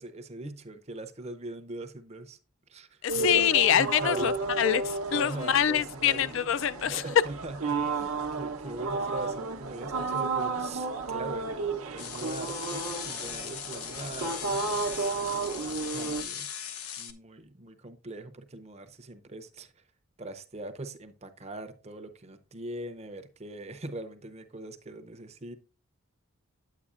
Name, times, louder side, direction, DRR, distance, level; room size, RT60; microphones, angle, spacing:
voice 1, 0.0-2.4 2.7-3.5 3.7-4.3 5.1-6.3 6.9-16.5 17.0-19.8 20.2-25.5, right 2 dB, 30° right, 0.6 m, -41 dB
voice 2, 3.0-7.0, left 9 dB, 55° left, 0.3 m, -25 dB
sound 1, 3.1-16.2, right 4 dB, 70° right, 0.8 m, -33 dB
sound 2, 12.0-17.1, left 8 dB, 80° left, 0.9 m, -39 dB
9.3 x 8.3 x 2.5 m
head